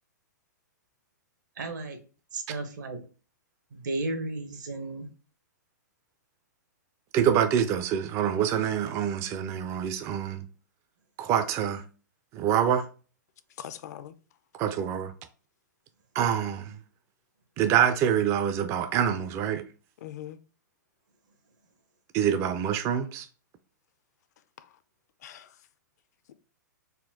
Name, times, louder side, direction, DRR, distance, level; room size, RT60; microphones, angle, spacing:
voice 1, 1.6-2.0 2.3-3.0 3.7-5.1, right 2 dB, 75° right, 1.1 m, -34 dB
voice 2, 7.1-10.5 11.2-11.8 12.3-12.9 14.5-15.1 16.2-16.8 17.6-19.6 22.1-23.3, right 9 dB, 30° right, 0.4 m, -26 dB
voice 3, 13.6-14.2 20.0-20.4 24.6-24.7 25.2-25.6, left 11 dB, 60° left, 0.4 m, -41 dB
4.2 x 2.2 x 3.6 m
hypercardioid pair, 125°, 10 cm